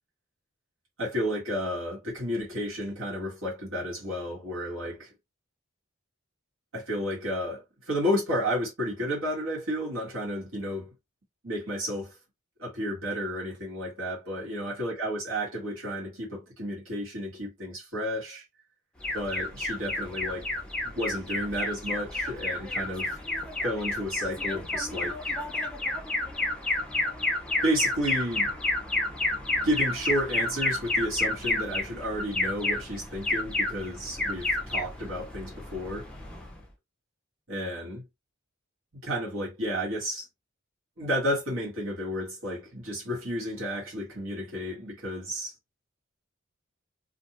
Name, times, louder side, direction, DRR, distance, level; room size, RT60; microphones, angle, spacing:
voice 1, 1.0-5.1 6.7-10.9 11.4-12.2 12.6-18.4 19.1-20.5 20.8-23.2 23.6-25.4 27.6-28.5 29.6-36.1 37.5-38.0 39.0-40.3 41.0-45.5, equal, 70° right, 1.3 m, -32 dB
Alarm, 19.0-36.6, left 2 dB, 5° left, 0.5 m, -30 dB
2.5 x 2.2 x 2.8 m
head